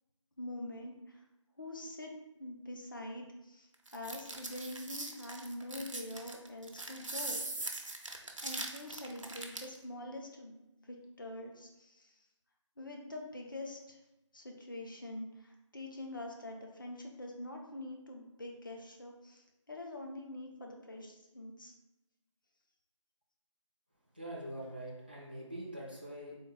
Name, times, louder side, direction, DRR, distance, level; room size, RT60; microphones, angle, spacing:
voice 1, 0.4-1.2 1.6-2.1 2.4-7.7 8.4-10.5 10.8-12.1 12.8-14.0 14.3-21.7, left 1 dB, 40° left, 1 dB, 0.5 m, -45 dB
sound 1, 3.9-9.8, right 2 dB, 75° right, 0.6 m, -41 dB
voice 2, 24.1-26.3, right 1 dB, 20° right, -5 dB, 0.5 m, -43 dB
3.7 x 2.5 x 3.5 m, 0.95 s
figure-of-eight pair, 165°, 16 cm